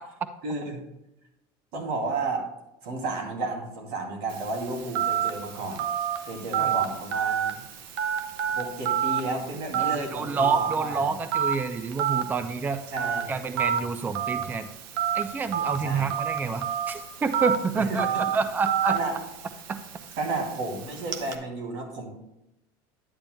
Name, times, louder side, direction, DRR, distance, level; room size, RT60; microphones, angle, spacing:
voice 1, 0.4-0.8 1.7-2.5 2.8-5.8 6.2-7.6 8.5-11.1 12.9-13.3 15.8-16.1 17.7-18.2 18.9-19.2 20.2-22.1, right 3 dB, 65° right, 1 dB, 2.6 m, -32 dB
Telephone, 4.3-21.3, right 9 dB, 85° right, 0.9 m, -30 dB
voice 2, 9.8-12.8 13.3-14.7 15.1-19.0 19.7-19.8, right 5 dB, 15° right, 11 dB, 0.4 m, -28 dB
10.5 x 8.6 x 2.2 m, 0.87 s
cardioid pair, 145°, 12 cm